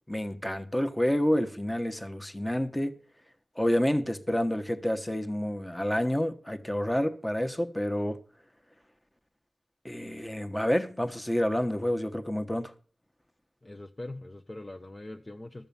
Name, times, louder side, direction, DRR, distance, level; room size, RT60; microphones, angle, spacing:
voice 1, 0.1-3.0 3.6-8.2 9.8-12.7, equal, 10° left, 1.2 m, -29 dB
voice 2, 13.6-15.7, left 2 dB, 25° left, 0.8 m, -42 dB
13.5 x 6.8 x 7.0 m
wide cardioid pair, 80°, 0 cm